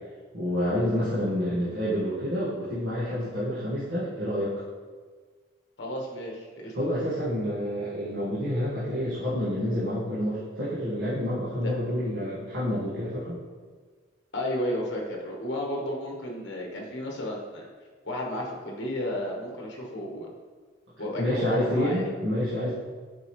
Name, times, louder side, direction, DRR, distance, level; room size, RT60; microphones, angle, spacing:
voice 1, 0.3-4.5 6.7-13.4 21.2-22.7, equal, 70° right, -10 dB, 1.5 m, -28 dB
voice 2, 5.8-6.7 11.6-11.7 14.3-17.7 18.0-20.3 21.0-22.0, equal, 65° left, -2 dB, 1.3 m, -32 dB
7.3 x 5.2 x 3.1 m, 1.5 s
head